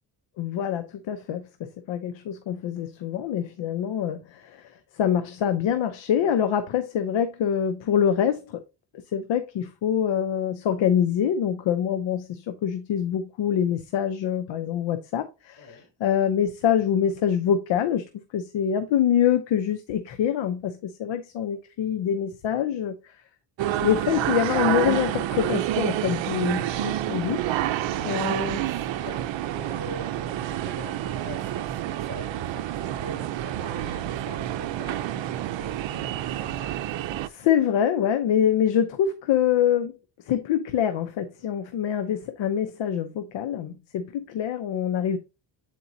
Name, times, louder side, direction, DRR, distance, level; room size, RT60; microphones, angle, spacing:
voice 1, 0.4-8.6 9.1-18.1 18.3-23.1 23.8-27.4 28.0-28.6 36.6-36.7 37.2-39.9 40.3-45.2, left 9 dB, 80° left, 0.8 m, -25 dB
voice 2, 15.6-15.9 27.8-36.6, left 2 dB, 45° left, 3.4 m, -44 dB
sound 1, 23.6-37.3, right 12 dB, 80° right, 0.6 m, -28 dB
8.1 x 4.5 x 2.7 m
cardioid pair, 110°, 44 cm